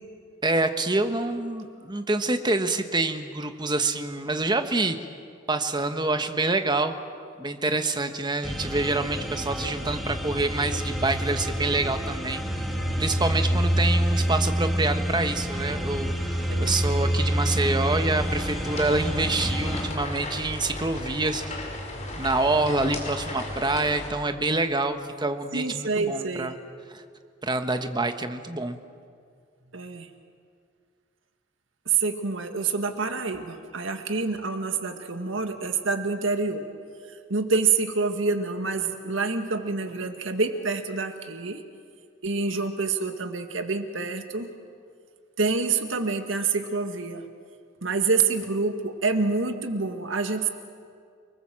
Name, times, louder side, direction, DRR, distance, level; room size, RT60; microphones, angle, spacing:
voice 1, 0.4-5.0 5.5-6.9 7.4-12.4 13.0-21.4 22.1-26.6 26.9-27.0 27.4-28.8, right 2 dB, 20° right, 8 dB, 1.3 m, -26 dB
sound 1, 8.4-19.9, equal, ahead, 2.4 m, -27 dB
sound 2, 18.2-24.1, left 1 dB, 35° left, 5.0 m, -35 dB
voice 2, 25.5-26.5 29.7-30.1 31.9-36.7 37.3-41.6 42.2-44.5 45.4-47.2 47.8-50.5, right 4 dB, 75° right, 6 dB, 1.9 m, -27 dB
29.0 x 20.5 x 7.7 m, 2.2 s
head